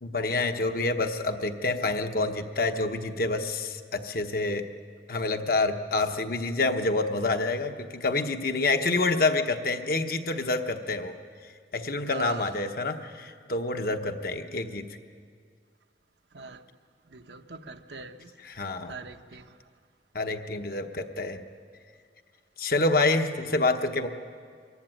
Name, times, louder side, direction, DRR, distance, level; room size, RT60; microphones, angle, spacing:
voice 1, 0.0-4.7 5.1-11.1 11.7-14.9 18.4-18.9 20.1-21.4 22.6-24.1, left 3 dB, 55° left, 6 dB, 1.1 m, -27 dB
voice 2, 12.1-12.5 16.3-16.6 17.1-18.3 18.9-19.6, right 4 dB, 80° right, 7 dB, 1.0 m, -41 dB
23.5 x 14.5 x 9.1 m, 2.1 s
head